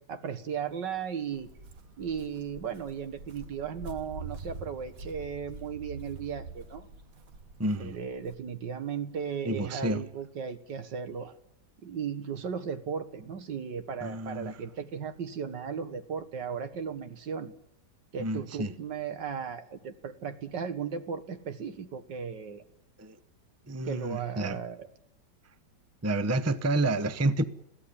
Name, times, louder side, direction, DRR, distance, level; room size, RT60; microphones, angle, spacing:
voice 1, 0.0-1.5 2.0-6.9 7.8-11.4 11.8-17.5 18.1-22.6 23.9-24.9, right 7 dB, 80° right, 10 dB, 2.2 m, -36 dB
Walk footsteps, 1.3-8.3, right 4 dB, 55° right, 1.8 m, -45 dB
voice 2, 7.6-8.0 9.4-10.0 14.0-14.5 18.2-18.7 23.0-23.1 23.7-24.6 26.0-27.4, right 2 dB, 15° right, 12 dB, 0.6 m, -29 dB
22.5 x 16.0 x 9.9 m, 0.81 s
omnidirectional pair, 1.9 m